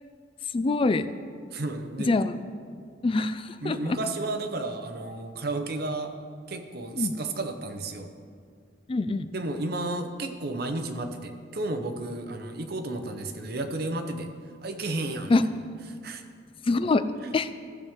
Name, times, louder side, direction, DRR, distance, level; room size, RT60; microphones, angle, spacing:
voice 1, 0.5-1.0 2.0-2.4 3.0-4.0 7.0-7.1 8.9-9.3 15.3-15.4 16.7-17.0 17.3-17.5, left 3 dB, 30° left, 11 dB, 0.4 m, -24 dB
voice 2, 1.5-2.1 3.6-6.1 6.5-8.1 9.3-14.3 14.6-15.5 15.9-16.2 17.2-17.3, right 2 dB, 60° right, 6 dB, 0.8 m, -32 dB
15.0 x 7.1 x 3.6 m, 2.1 s
head